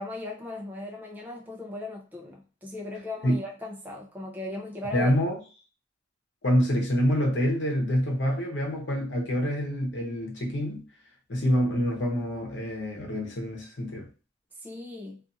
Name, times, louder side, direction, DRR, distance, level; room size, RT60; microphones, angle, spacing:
voice 1, 0.0-5.2 14.6-15.2, left 2 dB, 10° right, 0.5 m, -37 dB
voice 2, 4.9-5.4 6.4-10.8 11.3-14.1, equal, 70° left, 0.9 m, -26 dB
2.6 x 2.5 x 2.6 m
head